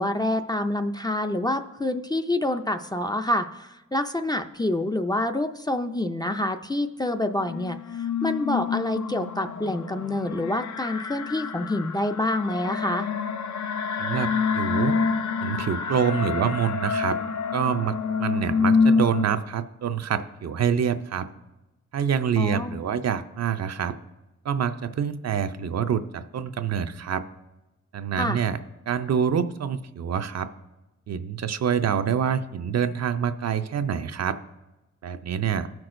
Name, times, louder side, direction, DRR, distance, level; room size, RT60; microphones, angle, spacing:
voice 1, 0.0-7.8 8.2-13.1 22.4-22.8 28.2-28.4, left 1 dB, 15° left, 6 dB, 0.4 m, -27 dB
sound 1, 7.4-19.3, left 5 dB, 70° left, 0.6 m, -27 dB
voice 2, 14.0-14.9 15.4-17.2 17.5-21.3 21.9-24.0 24.4-27.2 27.9-28.6 28.9-30.5 31.1-34.4 35.0-35.7, right 8 dB, 60° right, 9 dB, 0.5 m, -26 dB
17.0 x 6.0 x 2.5 m, 1.0 s
wide cardioid pair, 100°, 30 cm